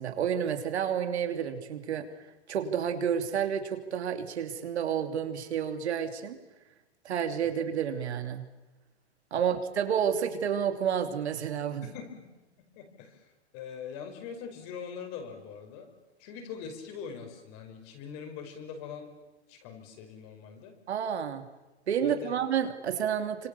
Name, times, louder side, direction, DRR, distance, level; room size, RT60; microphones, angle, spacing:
voice 1, 0.0-2.0 2.5-6.4 7.0-8.4 9.3-11.8 20.9-21.4 21.9-23.5, right 8 dB, 70° right, 6 dB, 3.2 m, -30 dB
voice 2, 12.7-13.2 13.5-15.9 16.2-19.1 19.5-20.7 22.0-22.4, left 7 dB, 35° left, 5 dB, 5.1 m, -42 dB
26.5 x 26.0 x 7.1 m, 1.1 s
hypercardioid pair, 155°, 34 cm